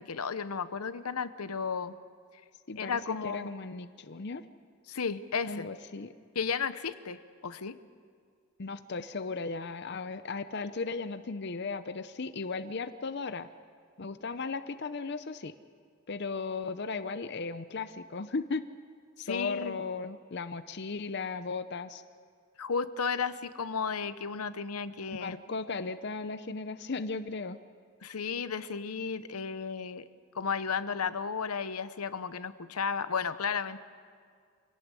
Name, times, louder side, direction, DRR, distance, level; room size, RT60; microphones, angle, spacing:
voice 1, 0.0-1.9 2.8-3.5 4.9-5.7 6.3-7.8 19.3-19.8 22.6-25.3 28.0-30.0 30.3-33.8, left 6 dB, 90° left, 13 dB, 0.9 m, -33 dB
voice 2, 2.7-4.4 5.5-6.1 8.6-13.5 14.0-15.5 16.1-18.7 19.2-22.0 25.2-27.6, left 4 dB, 50° left, 11 dB, 0.6 m, -36 dB
25.5 x 17.5 x 8.3 m, 2.1 s
head